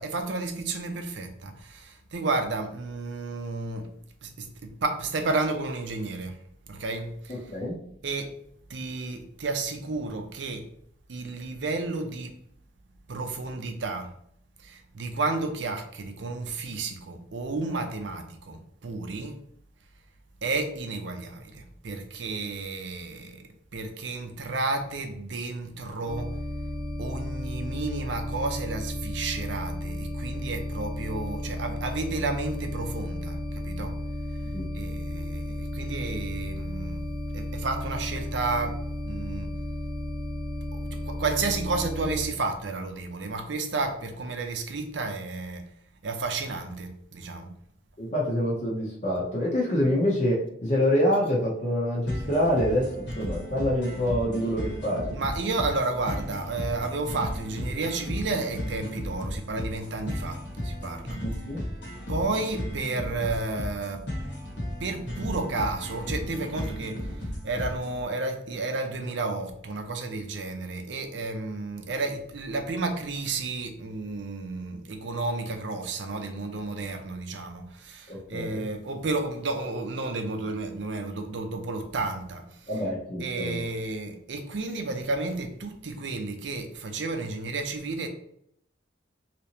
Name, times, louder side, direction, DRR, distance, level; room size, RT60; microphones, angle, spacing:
voice 1, 0.0-3.9 4.2-6.4 6.7-7.4 8.0-8.3 8.7-10.7 11.1-12.3 13.1-14.1 14.6-19.4 20.4-23.4 23.7-26.3 27.0-33.9 34.7-37.0 37.3-39.5 40.8-45.6 46.0-47.5 55.1-61.2 62.1-64.0 64.8-82.8 83.2-88.1, right 3 dB, 70° right, 0.6 m, -32 dB
voice 2, 7.3-7.8 34.5-34.7 35.8-35.9 48.0-55.1 61.2-61.6 78.1-78.6 82.7-83.6, equal, 35° left, 0.7 m, -26 dB
sound 1, 26.1-42.3, left 1 dB, 85° left, 1.0 m, -33 dB
sound 2, 52.1-68.0, equal, 65° left, 1.1 m, -35 dB
3.3 x 2.9 x 2.8 m
head